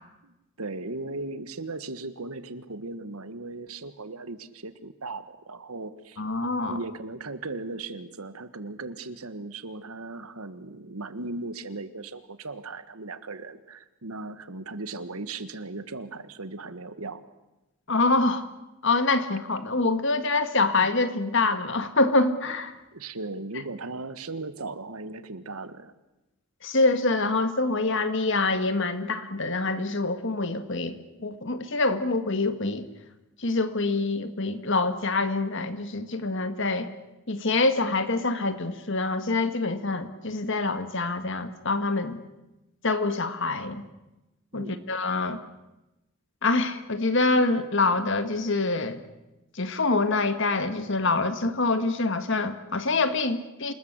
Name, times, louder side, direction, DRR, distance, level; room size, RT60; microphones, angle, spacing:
voice 1, 0.2-6.2 6.6-17.2 22.9-25.9 44.5-44.8, right 3 dB, 85° right, 12 dB, 1.6 m, -37 dB
voice 2, 6.2-6.8 17.9-18.5 18.8-22.7 26.6-32.9 33.4-36.9 37.3-42.2 42.8-43.8 44.5-45.4 46.4-49.0 49.6-53.7, left 3 dB, 55° left, 10 dB, 1.8 m, -25 dB
27.5 x 20.0 x 8.2 m, 0.98 s
head